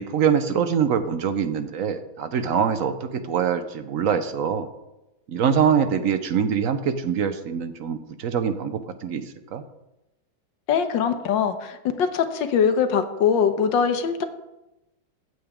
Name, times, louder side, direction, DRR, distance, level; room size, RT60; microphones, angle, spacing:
voice 1, 0.0-4.7 5.3-9.2 9.5-9.6, right 7 dB, 60° right, 10 dB, 0.9 m, -24 dB
voice 2, 10.7-14.2, left 7 dB, 75° left, 8 dB, 1.5 m, -22 dB
15.5 x 7.9 x 3.6 m, 0.95 s
omnidirectional pair, 2.1 m